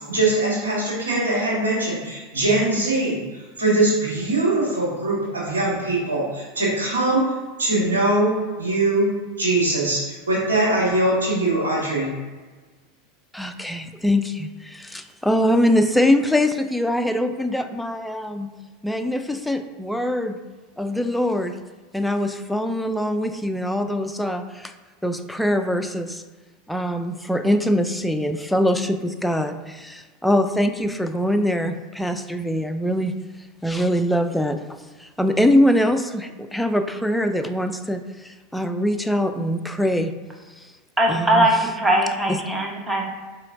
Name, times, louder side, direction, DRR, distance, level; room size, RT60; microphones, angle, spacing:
voice 1, 0.1-7.3 7.6-9.1 9.4-12.1, right 2 dB, 90° right, -5 dB, 1.3 m, -22 dB
voice 2, 13.3-18.5 18.8-20.4 20.8-21.5 21.9-24.7 25.0-26.2 26.7-33.2 33.6-34.6 35.0-40.1 41.1-41.5 42.3-42.4, left 1 dB, 5° left, 7 dB, 0.4 m, -23 dB
voice 3, 41.0-43.1, right 1 dB, 15° right, 0 dB, 0.9 m, -20 dB
4.3 x 3.8 x 2.6 m, 1.3 s
hypercardioid pair, 90°, 0 cm